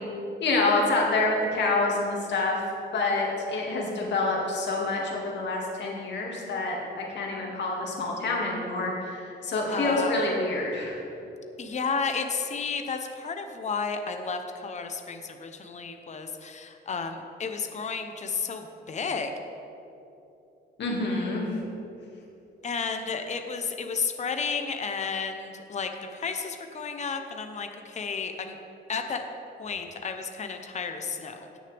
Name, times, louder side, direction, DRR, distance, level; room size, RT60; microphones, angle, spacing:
voice 1, 0.4-2.6 2.9-11.0 20.8-21.6, left 2 dB, 60° left, -2 dB, 2.3 m, -27 dB
voice 2, 9.7-10.2 11.6-19.3 22.6-28.6 28.9-29.2 29.6-31.6, left 5 dB, 35° left, 6 dB, 0.9 m, -32 dB
17.0 x 6.4 x 3.5 m, 2.8 s
cardioid pair, 90°, 20 cm